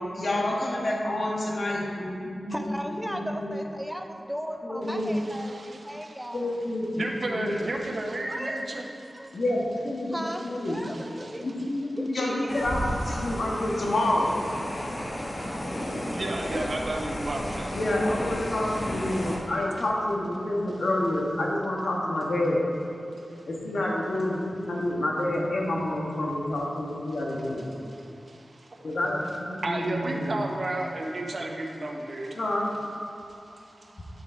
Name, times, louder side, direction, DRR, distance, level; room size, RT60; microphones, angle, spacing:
voice 1, 0.0-2.7 3.1-3.6 4.6-5.1 6.3-7.5 9.3-10.8 11.4-14.4 17.7-22.7 23.4-27.7 28.8-30.4 32.3-32.7, left 1 dB, 75° left, -2 dB, 1.6 m, -28 dB
voice 2, 2.5-6.6 8.3-8.6 9.1-9.4 10.1-11.5 11.8-12.7, equal, ahead, 4 dB, 0.9 m, -36 dB
voice 3, 5.1-6.3 6.9-8.9 9.3-9.4 10.7-11.4 16.1-17.8 19.4-19.5 23.2-23.5 27.9-28.9 29.6-32.4 33.1-33.8, right 2 dB, 60° right, 1 dB, 1.1 m, -34 dB
sound 1, 12.5-19.4, left 1 dB, 50° left, 1.5 m, -33 dB
9.9 x 6.1 x 4.5 m, 2.8 s
cardioid pair, 55°, 0 cm